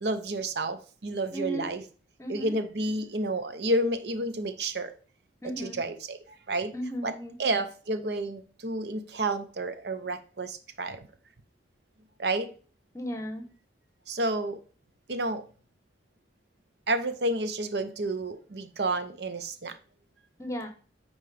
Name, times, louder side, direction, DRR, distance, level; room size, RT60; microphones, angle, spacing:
voice 1, 0.0-1.8 2.3-4.9 5.6-6.7 7.0-7.1 7.4-11.1 12.2-12.5 14.1-14.6 15.1-15.4 16.9-19.8, right 2 dB, 65° right, 10 dB, 0.8 m, -30 dB
voice 2, 1.3-1.7 2.2-2.5 5.4-5.8 6.7-7.3 12.9-13.4 20.4-20.7, equal, 15° left, 7 dB, 0.9 m, -35 dB
9.5 x 4.0 x 3.4 m, 0.40 s
head